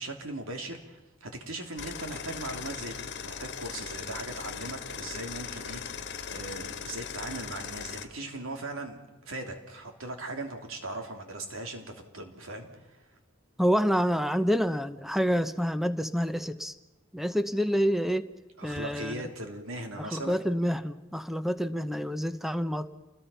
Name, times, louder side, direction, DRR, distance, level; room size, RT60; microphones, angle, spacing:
voice 1, 0.0-13.0 18.6-20.4, right 2 dB, 80° right, 4 dB, 3.1 m, -39 dB
sound 1, 1.8-8.1, left 7 dB, 55° left, 1.5 m, -39 dB
voice 2, 13.6-16.7 17.1-18.3 18.6-19.2 20.0-23.0, equal, ahead, 11 dB, 0.9 m, -28 dB
28.5 x 20.5 x 5.7 m, 1.1 s
head